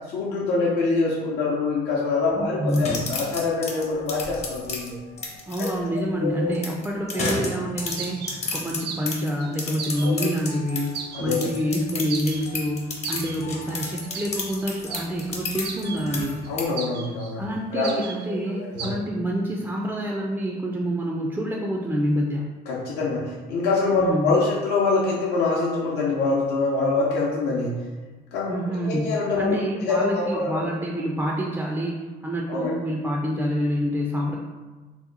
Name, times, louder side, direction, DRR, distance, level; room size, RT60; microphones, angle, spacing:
voice 1, 0.1-4.9 5.6-5.7 6.2-6.5 7.2-7.4 10.0-10.3 11.1-11.5 16.5-17.5 17.7-18.0 18.5-19.0 22.7-27.8 28.3-30.7 32.5-32.7, left 3 dB, 80° left, -4 dB, 0.7 m, -25 dB
voice 2, 2.4-2.9 5.5-16.5 17.4-22.5 23.9-24.5 28.5-34.4, equal, 10° right, -1 dB, 0.3 m, -27 dB
sound 1, 2.7-5.7 6.5-11.0 11.3-16.6, left 3 dB, 40° left, 0.7 m, -32 dB
sound 2, 7.9-9.1 9.4-10.2 10.5-10.6 10.9-11.7 12.0-12.7 13.0-13.4 14.0-16.0 16.4-17.3 17.8-18.3 18.8-19.0, right 6 dB, 75° right, 0.4 m, -36 dB
2.8 x 2.1 x 3.8 m, 1.3 s
cardioid pair, 110°, 17 cm